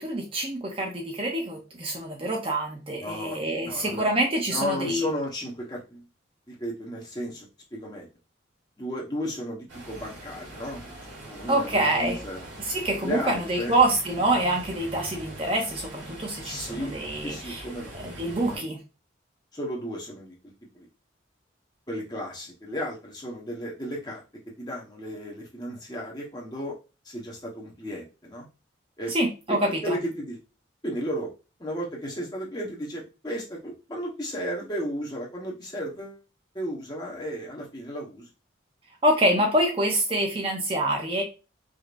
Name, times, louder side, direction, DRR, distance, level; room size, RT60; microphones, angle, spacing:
voice 1, 0.0-5.1 11.5-12.2 12.6-17.6 17.9-18.8 29.1-30.0 39.0-41.2, right 1 dB, 30° right, 1 dB, 0.6 m, -26 dB
voice 2, 3.0-3.4 3.6-4.1 4.5-6.0 6.5-8.1 8.8-10.8 11.2-12.5 13.0-13.8 16.4-16.9 17.2-17.9 18.4-18.6 19.5-20.4 20.7-20.9 21.9-24.2 24.6-26.8 27.0-28.5 29.0-29.1 29.5-30.4 30.8-31.3 31.6-36.2 36.5-38.3, equal, 20° left, -3 dB, 1.1 m, -34 dB
sound 1, 9.7-18.6, right 1 dB, 85° right, 2.1 m, -42 dB
5.0 x 2.8 x 2.5 m, 0.30 s
head